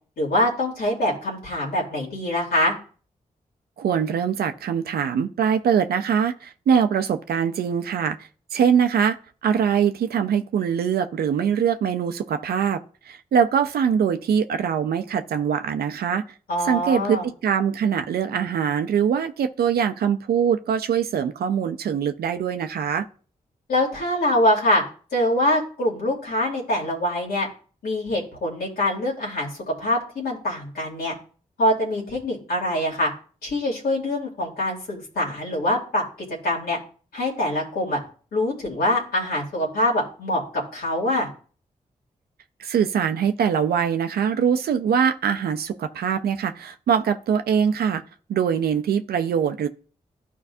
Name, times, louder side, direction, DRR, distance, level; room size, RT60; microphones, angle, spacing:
voice 1, 0.2-2.7 16.5-17.3 23.7-24.8 25.1-27.5 27.8-31.1 31.6-33.1 33.4-36.0 36.4-36.8 37.1-38.0 38.3-40.4 40.7-41.3, left 1 dB, 80° left, 2.9 m, -24 dB
voice 2, 3.8-9.2 9.4-12.8 13.1-16.2 16.6-23.1 42.6-48.0 48.3-49.7, right 7 dB, 80° right, 0.5 m, -23 dB
12.5 x 4.6 x 2.7 m
supercardioid pair, 45°, 16 cm